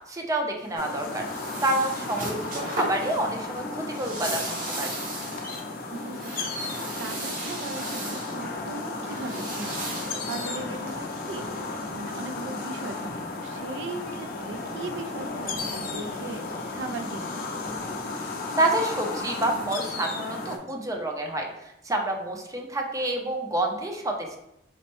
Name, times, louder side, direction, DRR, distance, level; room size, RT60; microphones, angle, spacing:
voice 1, 0.1-1.3 1.6-4.9 18.6-21.5 21.8-24.4, right 1 dB, 20° right, 2 dB, 0.4 m, -28 dB
sound 1, 0.6-11.4, right 2 dB, 50° right, 0.7 m, -37 dB
sound 2, 0.8-20.6, left 3 dB, 55° left, 0.5 m, -34 dB
voice 2, 5.9-6.7 7.0-16.4 16.7-17.5, right 3 dB, 90° right, 7 dB, 0.3 m, -38 dB
4.2 x 2.1 x 2.9 m, 0.84 s
head